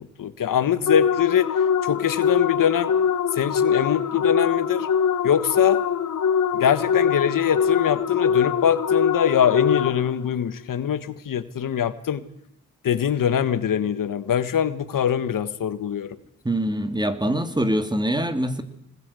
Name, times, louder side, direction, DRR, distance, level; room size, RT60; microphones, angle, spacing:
voice 1, 0.0-1.5 1.8-2.9 3.3-4.9 5.2-5.8 6.5-12.2 12.8-16.1, left 9 dB, 90° left, 13 dB, 1.5 m, -23 dB
sound 1, 0.9-10.2, left 7 dB, 70° left, 1.2 m, -23 dB
voice 2, 16.4-18.6, right 1 dB, 15° right, 9 dB, 2.3 m, -24 dB
25.5 x 20.0 x 8.3 m, 0.71 s
wide cardioid pair, 105°, 32 cm